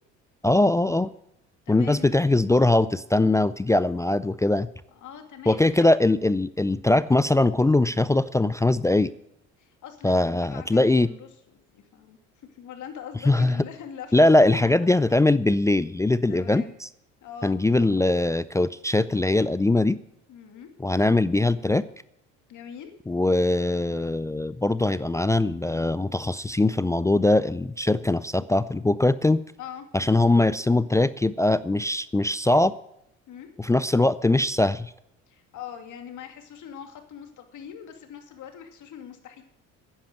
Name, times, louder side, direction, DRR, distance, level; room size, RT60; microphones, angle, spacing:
voice 1, 0.4-1.1 1.7-4.7 5.5-9.1 10.0-11.1 13.3-13.6 14.1-16.9 17.4-20.0 20.8-21.8 23.1-29.4 29.9-32.7 33.6-34.9, left 2 dB, 10° left, 15 dB, 0.4 m, -21 dB
voice 2, 1.7-2.1 5.0-6.1 9.6-12.2 12.5-14.2 14.5-15.1 16.3-16.7 17.2-17.5 20.3-20.7 22.5-22.9 29.6-29.9 33.3-33.5 35.3-39.4, left 8 dB, 60° left, 5 dB, 2.5 m, -42 dB
10.5 x 10.0 x 7.8 m, 0.77 s
supercardioid pair, 75°, 34 cm